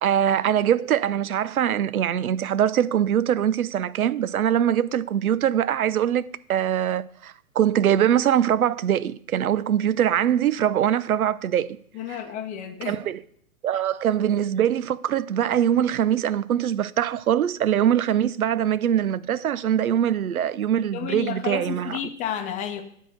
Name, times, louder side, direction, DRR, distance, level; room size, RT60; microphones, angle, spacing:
voice 1, 0.0-11.8 12.1-12.2 12.8-13.2 13.6-22.0, right 10 dB, 75° right, 0.6 m, -23 dB
voice 2, 11.9-13.0 20.9-22.8, left 9 dB, 15° left, 0.9 m, -31 dB
10.0 x 5.0 x 7.8 m
figure-of-eight pair, 125°, 43 cm